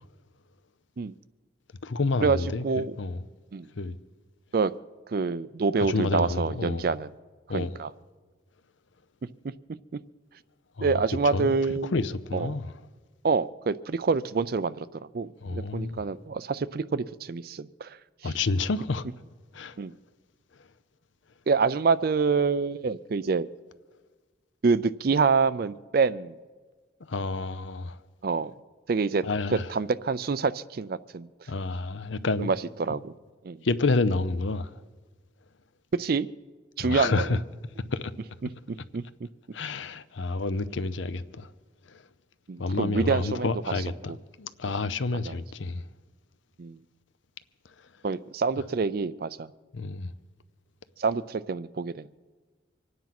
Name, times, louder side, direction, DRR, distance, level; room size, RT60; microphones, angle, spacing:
voice 1, 1.8-3.2 3.8-4.0 5.8-6.9 7.5-7.8 10.8-11.0 11.3-11.5 11.9-12.7 15.4-16.0 18.2-19.1 19.5-19.8 27.1-28.0 29.2-29.7 31.5-32.5 32.9-33.0 33.6-34.7 36.8-37.4 37.9-38.1 39.5-41.5 41.9-42.0 42.6-45.8 49.7-50.1, left 3 dB, 75° left, 0.7 m, -29 dB
voice 2, 2.6-2.9 3.5-3.7 4.5-4.7 5.1-7.1 7.5-7.9 9.9-10.0 10.8-11.9 12.3-12.6 13.2-14.9 15.1-18.0 18.2-18.3 19.8-19.9 21.5-23.5 24.6-26.4 28.2-28.5 28.9-29.2 29.5-31.3 32.4-33.1 33.4-33.6 35.9-36.3 36.8-37.4 38.7-39.0 42.5-43.5 45.3-45.4 46.6-46.8 48.0-49.5 51.0-52.1, right 4 dB, 50° right, 0.4 m, -26 dB
25.0 x 9.5 x 5.9 m
head